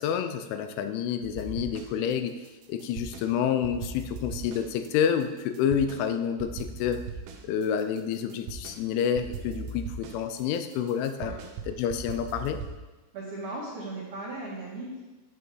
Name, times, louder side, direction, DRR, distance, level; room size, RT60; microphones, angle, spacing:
voice 1, 0.0-2.4 2.7-7.0 7.4-11.3 11.7-12.6, left 8 dB, 90° left, 8 dB, 3.1 m, -28 dB
sound 1, 1.2-2.1 2.4-3.3 3.6-6.0 6.4-8.8 9.2-12.8, right 4 dB, 80° right, 2.7 m, -39 dB
voice 2, 13.1-15.0, right 2 dB, 60° right, -7 dB, 2.2 m, -37 dB
8.9 x 8.1 x 3.1 m, 1.2 s
omnidirectional pair, 5.4 m